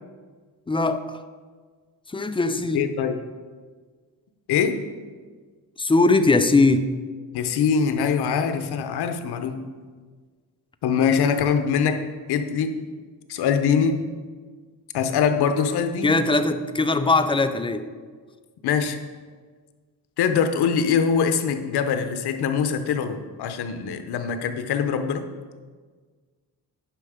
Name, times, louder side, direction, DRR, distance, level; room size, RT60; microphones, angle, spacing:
voice 1, 0.7-1.2 2.1-2.9 5.8-6.9 16.0-17.8, left 3 dB, 15° left, 9 dB, 0.4 m, -20 dB
voice 2, 2.7-3.2 4.5-4.8 7.3-9.6 10.8-12.0 12.3-12.8 13.3-14.0 14.9-16.2 18.6-19.0 20.2-25.3, left 6 dB, 85° left, 8 dB, 0.9 m, -23 dB
10.5 x 5.5 x 5.0 m, 1.5 s
cardioid pair, 115°, 38 cm